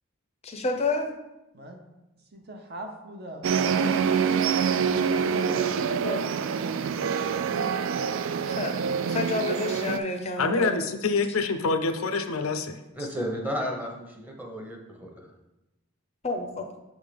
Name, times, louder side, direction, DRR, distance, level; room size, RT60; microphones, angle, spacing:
voice 1, 0.4-1.1 6.0-6.3 6.7-6.9 8.4-10.8 16.2-16.7, left 2 dB, 30° left, 5 dB, 0.5 m, -30 dB
voice 2, 2.3-3.7, right 1 dB, 50° right, 3 dB, 0.9 m, -41 dB
sound 1, 3.4-10.0, right 6 dB, 65° right, 0.3 m, -26 dB
voice 3, 10.4-12.8, left 4 dB, 80° left, 8 dB, 0.5 m, -26 dB
voice 4, 13.0-15.1, equal, 10° right, 0 dB, 0.9 m, -33 dB
6.4 x 3.6 x 5.0 m, 0.97 s
head